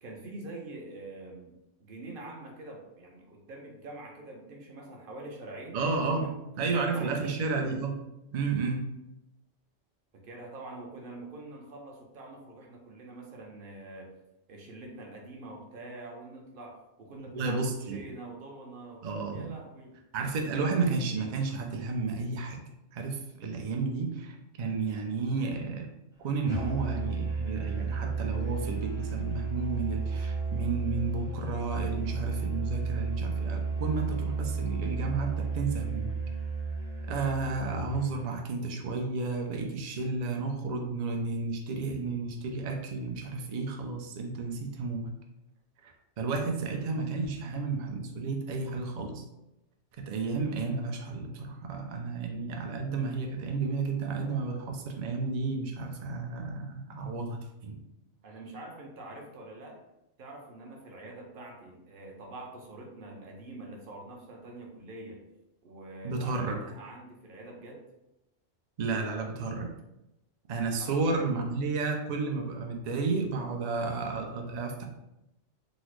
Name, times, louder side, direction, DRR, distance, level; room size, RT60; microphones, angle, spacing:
voice 1, 0.0-5.8 6.1-6.4 6.6-7.5 10.2-14.1 14.5-19.9 58.2-59.8 60.2-65.2 65.6-67.8 70.8-71.0, right 2 dB, 55° right, 1 dB, 0.8 m, -45 dB
voice 2, 5.7-6.2 6.6-8.0 8.3-8.8 17.3-18.0 19.0-19.5 20.1-22.6 22.9-25.9 26.2-36.2 37.1-45.1 45.8-49.2 50.1-57.8 66.0-66.6 68.8-69.7 70.5-74.8, right 4 dB, 80° right, 2 dB, 0.3 m, -32 dB
Musical instrument, 26.5-38.2, right 4 dB, 5° right, 0.5 m, -33 dB
3.8 x 2.0 x 3.0 m, 0.90 s
omnidirectional pair, 1.2 m